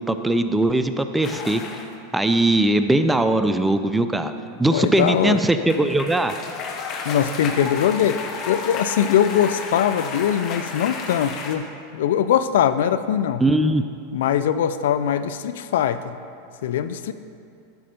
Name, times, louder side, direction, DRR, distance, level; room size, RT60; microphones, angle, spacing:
voice 1, 0.0-1.8 2.1-4.3 4.6-6.3 13.4-13.8, right 1 dB, 10° right, 9 dB, 0.5 m, -20 dB
sound 1, 1.2-1.9 5.3-11.6, left 4 dB, 45° left, 1.0 m, -32 dB
voice 2, 4.7-5.4 7.1-8.2 8.5-11.6 11.9-13.4 14.1-16.0 16.6-17.1, left 9 dB, 75° left, 12 dB, 0.3 m, -21 dB
11.5 x 4.3 x 5.2 m, 2.4 s
hypercardioid pair, 100°, 0 cm